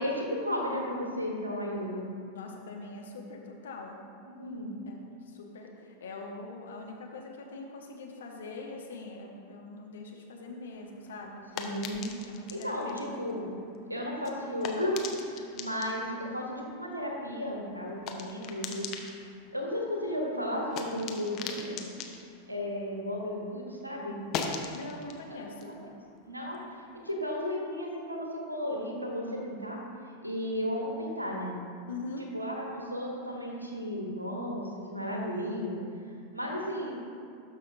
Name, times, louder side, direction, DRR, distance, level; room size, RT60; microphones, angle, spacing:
voice 1, 0.0-2.1 4.3-4.8 11.5-12.1 12.5-13.6 13.9-18.9 19.5-21.8 22.5-24.2 25.3-25.9 26.2-29.8 30.2-31.6 32.3-35.8 36.3-37.0, equal, 85° right, 0 dB, 1.2 m, -34 dB
voice 2, 2.3-4.0 4.9-11.5 12.2-13.1 24.7-25.8 31.9-32.3, left 3 dB, 65° left, 1 dB, 1.0 m, -43 dB
sound 1, 10.7-23.5 23.8-27.0, left 6 dB, 35° left, 0.7 m, -43 dB
12.5 x 5.6 x 2.6 m, 2.4 s
figure-of-eight pair, 90°, 0 cm